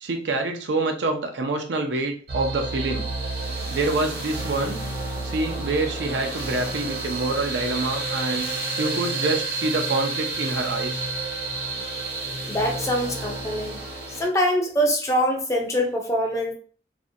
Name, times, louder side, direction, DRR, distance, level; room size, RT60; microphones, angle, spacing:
voice 1, 0.0-3.1 3.7-4.8 5.2-8.5 8.8-11.1 11.8-11.9, right 2 dB, 80° right, 4 dB, 0.5 m, -26 dB
sound 1, 2.3-14.3, right 3 dB, 60° right, 0.9 m, -30 dB
voice 2, 12.5-13.8 14.2-16.5, equal, 15° left, 1 dB, 0.4 m, -24 dB
2.5 x 2.1 x 2.6 m, 0.41 s
head